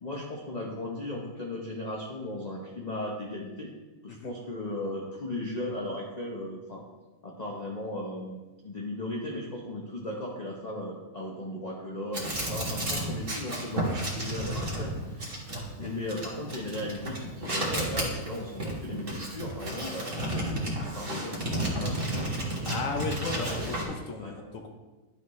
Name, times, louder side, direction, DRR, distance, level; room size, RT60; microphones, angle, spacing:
voice 1, 0.0-3.7 4.0-6.8 7.2-8.4 8.6-15.5 15.8-22.0 23.5-23.9 24.2-24.3, left 1 dB, 35° left, -2 dB, 0.8 m, -37 dB
sound 1, 12.1-23.8, right 1 dB, 40° right, 1.6 m, -32 dB
voice 2, 22.7-24.7, left 4 dB, 65° left, 3 dB, 1.1 m, -35 dB
10.5 x 5.5 x 3.1 m, 1.2 s
omnidirectional pair, 1.6 m